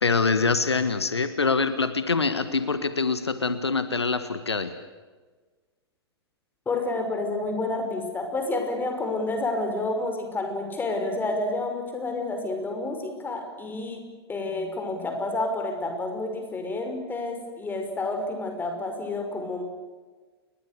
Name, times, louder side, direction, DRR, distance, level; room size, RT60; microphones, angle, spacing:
voice 1, 0.0-4.7, left 4 dB, 80° left, 11 dB, 1.5 m, -24 dB
voice 2, 6.7-14.0 14.3-19.6, left 2 dB, 15° left, 4 dB, 5.7 m, -29 dB
29.0 x 22.0 x 6.8 m, 1.4 s
figure-of-eight pair, 100°, 14 cm